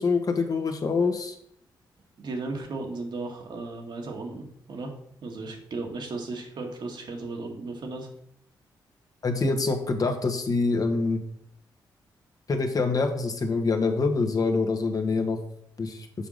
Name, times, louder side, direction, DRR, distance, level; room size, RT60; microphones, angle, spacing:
voice 1, 0.0-1.3 9.2-11.2 12.5-15.4 15.8-16.1, left 4 dB, 45° left, 5 dB, 1.2 m, -25 dB
voice 2, 2.2-4.9 5.2-8.1, right 3 dB, 65° right, 1 dB, 1.7 m, -35 dB
6.8 x 3.6 x 6.3 m, 0.70 s
cardioid pair, 75°, 8 cm